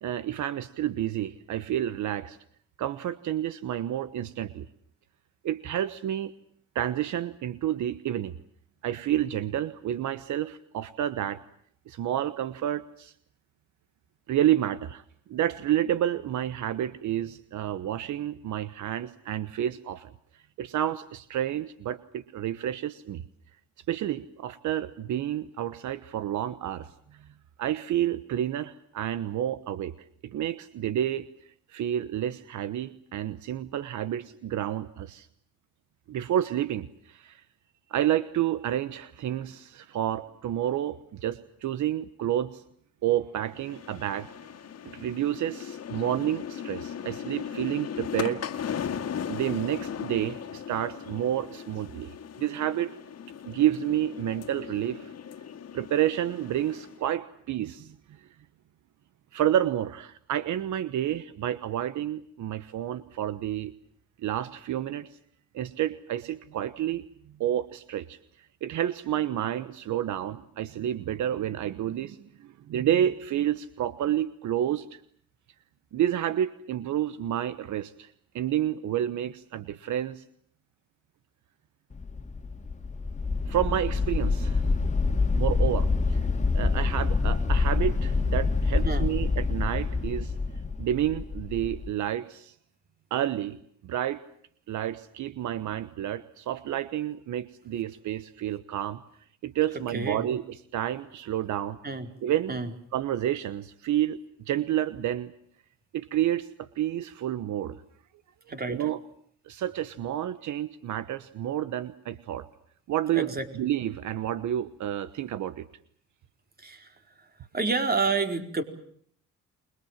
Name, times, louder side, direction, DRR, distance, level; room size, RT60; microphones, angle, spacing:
voice 1, 0.0-2.4 2.8-4.7 5.4-6.3 6.7-8.3 8.8-11.4 11.9-13.1 14.3-15.0 15.3-20.1 20.6-23.2 23.9-26.9 27.6-29.9 30.2-31.3 31.7-35.3 36.1-37.4 37.9-42.6 43.0-44.3 44.9-48.4 48.7-48.8 49.3-52.9 53.4-55.1 55.7-57.9 59.3-63.7 64.2-65.1 65.5-67.0 67.4-68.2 68.6-75.0 75.9-80.2 83.5-84.7 85.3-86.2 86.5-90.3 90.8-92.5 93.1-93.6 93.8-94.2 94.7-99.0 99.4-101.8 102.2-102.6 102.9-105.3 105.9-107.8 108.7-109.0 109.5-112.5 112.9-115.7, right 11 dB, 75° right, 14 dB, 1.2 m, -30 dB
sound 1, 43.5-57.0, left 8 dB, 55° left, 2.1 m, -38 dB
sound 2, 81.9-91.9, left 4 dB, 25° left, 2.4 m, -26 dB
voice 2, 99.9-100.3 101.8-102.1 102.5-102.7 108.5-108.9 113.2-113.5 116.6-117.3 117.5-118.6, right 4 dB, 30° right, 6 dB, 4.4 m, -29 dB
29.0 x 22.5 x 7.4 m, 0.64 s
cardioid pair, 90°, 30 cm